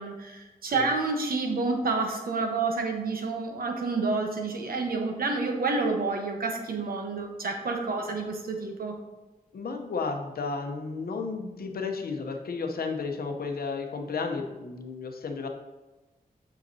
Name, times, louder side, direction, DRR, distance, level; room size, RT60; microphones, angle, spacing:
voice 1, 0.0-8.9, right 3 dB, 75° right, 3 dB, 1.1 m, -29 dB
voice 2, 9.5-15.5, left 4 dB, 85° left, 4 dB, 0.8 m, -33 dB
7.8 x 5.7 x 2.7 m, 1.1 s
wide cardioid pair, 110°, 15 cm